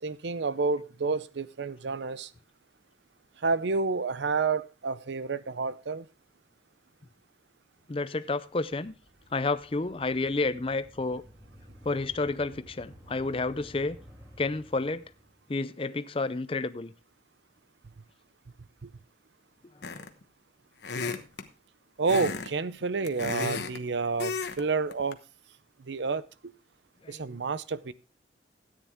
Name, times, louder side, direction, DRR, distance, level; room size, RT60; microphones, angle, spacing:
voice 1, 0.0-2.3 3.4-6.1 18.8-18.9 22.0-25.2 25.8-26.5 27.1-27.9, right 4 dB, 80° right, 0.6 m, -29 dB
voice 2, 7.9-8.9 9.3-11.2 11.9-14.0 14.4-15.0 15.5-16.9 27.1-27.2, left 3 dB, 30° left, 0.5 m, -30 dB
sound 1, 8.5-15.5, equal, 15° right, 2.7 m, -53 dB
sound 2, 19.8-20.2 20.8-21.5 22.1-22.5 22.8-23.8 24.2-24.6 24.9-25.1, left 4 dB, 70° left, 1.1 m, -33 dB
13.5 x 9.5 x 3.5 m
head